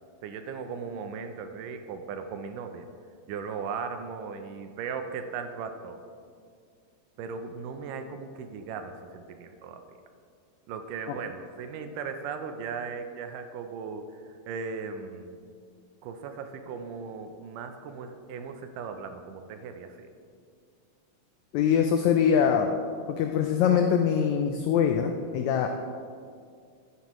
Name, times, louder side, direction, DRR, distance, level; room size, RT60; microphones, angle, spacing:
voice 1, 0.2-2.9 3.3-6.0 7.2-10.0 10.7-14.0 14.5-15.4 16.0-20.1, right 5 dB, 80° right, 7 dB, 2.2 m, -37 dB
voice 2, 21.5-22.7 23.1-25.7, left 7 dB, 85° left, 5 dB, 1.6 m, -23 dB
11.5 x 9.6 x 3.1 m, 2.2 s
omnidirectional pair, 3.9 m